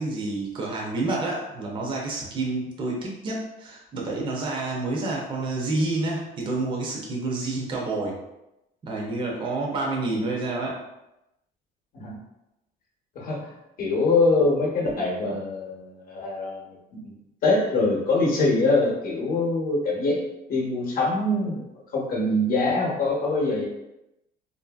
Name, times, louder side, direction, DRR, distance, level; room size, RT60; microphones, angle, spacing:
voice 1, 0.0-8.2 8.8-10.8, right 2 dB, 25° right, -2 dB, 0.5 m, -29 dB
voice 2, 13.8-16.8 17.0-20.2 20.5-21.6 21.9-23.7, left 2 dB, 50° left, -2 dB, 0.8 m, -24 dB
2.6 x 2.6 x 2.3 m, 0.90 s
cardioid pair, 130°, 19 cm